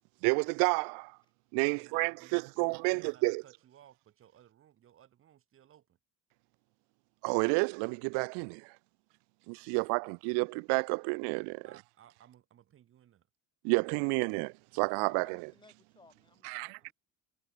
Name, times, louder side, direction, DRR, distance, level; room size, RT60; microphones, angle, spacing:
voice 1, 0.2-1.2 1.5-3.4 7.2-8.7 9.5-11.7 13.6-15.4 16.4-16.8, right 37 dB, 90° right, 0.5 m, -30 dB
voice 2, 1.7-6.0 11.6-13.3, right 11 dB, 30° right, 2.5 m, -60 dB
voice 3, 15.0-16.9, left 3 dB, 10° left, 3.6 m, -61 dB
cardioid pair, 180°, 39 cm